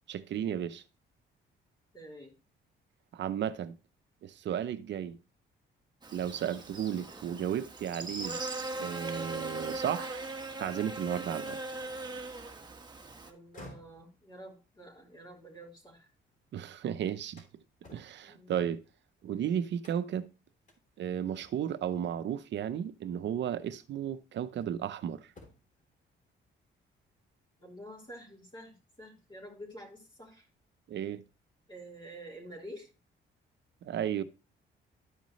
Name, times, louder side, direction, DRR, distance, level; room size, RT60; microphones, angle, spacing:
voice 1, 0.1-0.8 3.1-3.8 4.2-5.2 6.1-8.4 8.8-10.2 10.6-11.6 16.5-17.4 17.9-18.8 19.2-20.3 21.0-25.2 30.9-31.2 33.8-34.2, right 9 dB, 65° right, 0.8 m, -34 dB
voice 2, 1.9-2.3 13.2-16.1 18.2-18.6 27.6-30.5 31.7-32.9, equal, 25° left, 4.1 m, -48 dB
Buzz, 6.0-13.3, right 2 dB, 20° right, 1.4 m, -39 dB
sound 1, 13.4-16.5 16.9-19.2 19.8-20.3 20.7-20.8 21.3-21.8 23.1-23.2 23.8-24.9 25.2-25.8, left 1 dB, 40° left, 3.2 m, -56 dB
12.5 x 5.3 x 3.2 m
cardioid pair, 90°, 20 cm